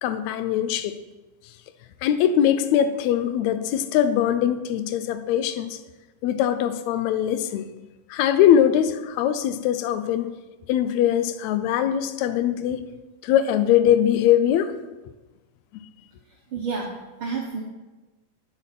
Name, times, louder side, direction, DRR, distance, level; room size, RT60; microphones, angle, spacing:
voice 1, 0.0-0.9 2.0-5.8 6.2-7.7 8.1-10.3 10.7-12.8 13.2-14.7 15.7-15.8, left 10 dB, 80° left, 1.7 m, -21 dB
voice 2, 16.5-17.6, right 5 dB, 85° right, 1.1 m, -30 dB
9.8 x 5.9 x 5.9 m
omnidirectional pair, 3.7 m